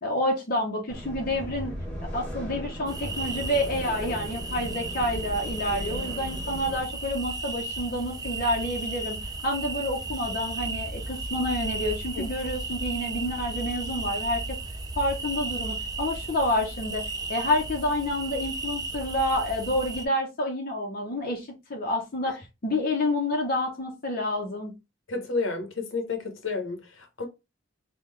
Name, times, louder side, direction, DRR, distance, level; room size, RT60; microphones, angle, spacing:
voice 1, 0.0-1.7 2.1-9.2 9.4-14.6 15.0-17.0 17.3-24.7, left 1 dB, 50° left, 0.7 m, -28 dB
sound 1, 0.9-6.8, equal, 5° left, 1.3 m, -37 dB
sound 2, 2.9-20.1, right 2 dB, 20° right, 0.4 m, -34 dB
voice 2, 25.1-27.3, left 3 dB, 80° left, 0.9 m, -31 dB
3.7 x 2.3 x 3.1 m
head